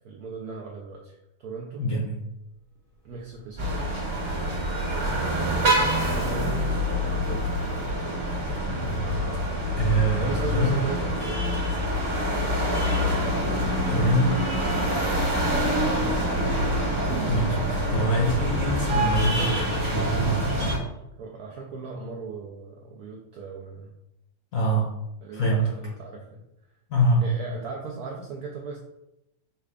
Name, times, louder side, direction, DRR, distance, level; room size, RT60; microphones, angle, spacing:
voice 1, 0.0-1.9 3.0-3.9 4.9-5.8 6.1-7.5 10.1-11.5 12.4-12.6 15.9-16.7 21.2-23.9 25.2-26.4 27.2-28.8, right 4 dB, 80° right, 0 dB, 0.8 m, -37 dB
voice 2, 1.8-2.2 8.7-9.2 9.7-10.8 13.9-14.5 17.3-20.7 24.5-24.9 25.3-25.6 26.9-27.2, right 1 dB, 60° left, -2 dB, 0.9 m, -25 dB
sound 1, 2.9-19.9, equal, 10° left, 0.8 m, -44 dB
sound 2, 3.6-20.8, equal, 40° right, 1.7 m, -26 dB
5.7 x 2.4 x 3.3 m, 0.88 s
omnidirectional pair, 2.2 m